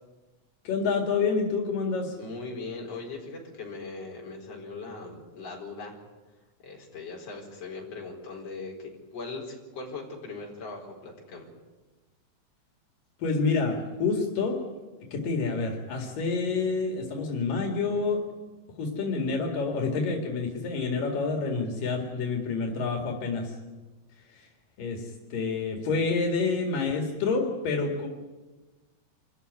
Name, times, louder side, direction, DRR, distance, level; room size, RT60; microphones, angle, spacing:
voice 1, 0.7-2.2 13.2-14.6 15.1-18.2 18.8-23.5 24.8-28.1, left 4 dB, 85° left, 2 dB, 4.0 m, -28 dB
voice 2, 2.2-6.0 6.6-11.5, left 3 dB, 50° left, 0 dB, 5.4 m, -39 dB
27.0 x 14.5 x 9.8 m, 1.2 s
omnidirectional pair, 3.8 m